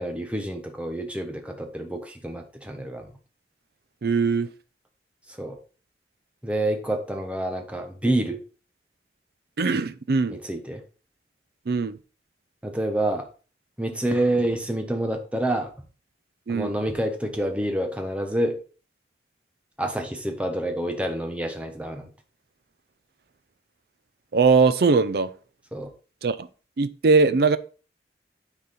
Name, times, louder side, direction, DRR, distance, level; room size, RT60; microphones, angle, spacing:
voice 1, 0.0-3.1 5.4-5.6 6.4-8.4 10.3-10.8 12.6-13.2 13.8-15.7 16.5-18.6 19.8-22.1 25.7-25.9, right 1 dB, 5° right, 1.1 m, -27 dB
voice 2, 4.0-4.5 9.6-10.4 11.7-12.0 16.5-16.8 24.3-25.3 26.2-26.5 26.8-27.6, right 4 dB, 60° right, 0.5 m, -20 dB
9.6 x 4.0 x 4.1 m
head